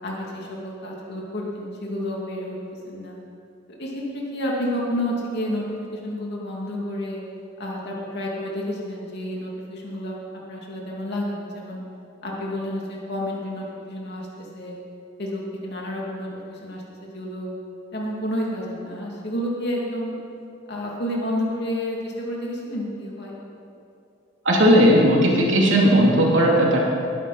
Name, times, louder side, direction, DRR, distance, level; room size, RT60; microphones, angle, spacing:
voice 1, 0.0-3.2 3.8-7.2 7.6-10.2 10.5-11.8 12.2-14.7 15.2-17.5 17.9-20.2 20.7-23.3, left 1 dB, 60° left, -3 dB, 2.8 m, -30 dB
voice 2, 24.4-26.8, equal, 75° right, -3 dB, 3.1 m, -16 dB
20.0 x 11.0 x 4.3 m, 2.7 s
head